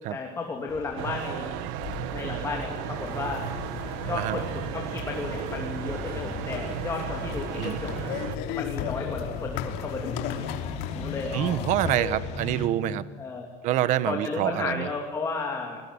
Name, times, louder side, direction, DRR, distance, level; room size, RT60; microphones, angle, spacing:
voice 1, 0.1-1.5 2.1-3.5 4.1-8.1 8.5-10.5 10.9-11.7 11.9-12.2 13.2-13.5 14.1-15.8, left 4 dB, 15° left, 1 dB, 2.9 m, -33 dB
sound 1, 0.7-12.7, left 5 dB, 45° left, 2.8 m, -38 dB
sound 2, 1.0-8.4, right 14 dB, 80° right, 1.2 m, -35 dB
sound 3, 1.8-12.0, left 9 dB, 70° left, 2.9 m, -38 dB
voice 2, 4.1-4.4 7.5-7.8 11.3-13.1 13.6-14.9, right 13 dB, 50° right, 15 dB, 1.2 m, -26 dB
29.0 x 21.5 x 9.6 m, 1.4 s
cardioid pair, 180°, 17 cm